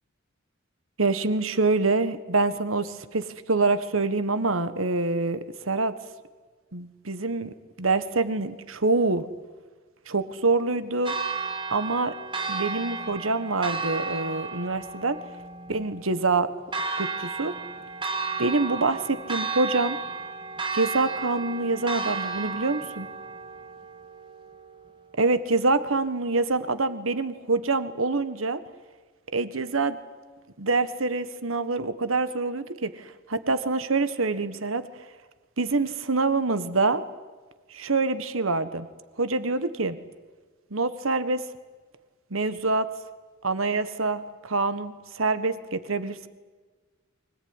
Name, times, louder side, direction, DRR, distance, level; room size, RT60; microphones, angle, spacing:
voice 1, 1.0-5.9 6.7-9.2 10.1-11.1 11.7-12.1 12.5-15.2 15.7-16.5 17.0-17.6 18.4-20.0 20.7-23.1 25.2-28.6 29.3-30.0 30.6-34.8 35.6-37.0 37.7-38.9 39.2-40.0 40.7-41.4 42.3-42.9 43.4-46.3, right 3 dB, 85° right, 12 dB, 1.6 m, -26 dB
Church bell, 11.1-25.1, right 4 dB, 25° right, 2.1 m, -33 dB
24.5 x 18.0 x 9.8 m, 1.4 s
head